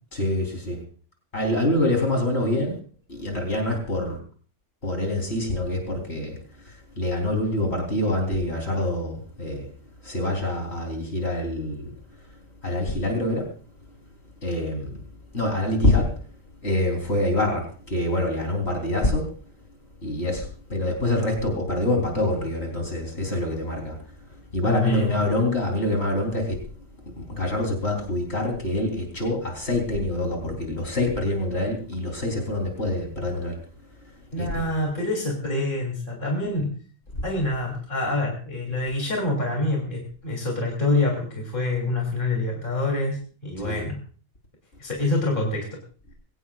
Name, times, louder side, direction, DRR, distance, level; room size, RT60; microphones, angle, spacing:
voice 1, 0.1-0.8 1.3-2.8 3.1-4.2 4.8-6.4 6.6-9.7 10.0-11.9 12.6-13.5 14.4-15.0 15.3-16.1 16.6-19.3 20.0-24.0 24.5-26.7 27.2-33.6 34.4-34.5 43.6-43.9, left 1 dB, 60° left, 2 dB, 4.1 m, -25 dB
voice 2, 24.6-25.1 34.3-36.7 37.2-44.0 44.8-45.8, left 2 dB, 40° left, 0 dB, 3.4 m, -26 dB
22.5 x 17.5 x 2.4 m, 0.40 s
omnidirectional pair, 1.3 m